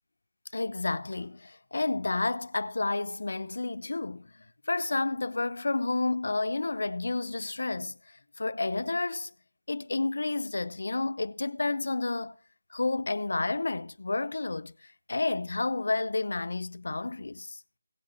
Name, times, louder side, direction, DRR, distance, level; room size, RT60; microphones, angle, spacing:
voice 1, 0.5-9.3 9.7-12.3 12.7-17.6, left 3 dB, 70° left, 0.6 m, -31 dB
16.5 x 7.7 x 4.2 m
figure-of-eight pair, 180°, 0 cm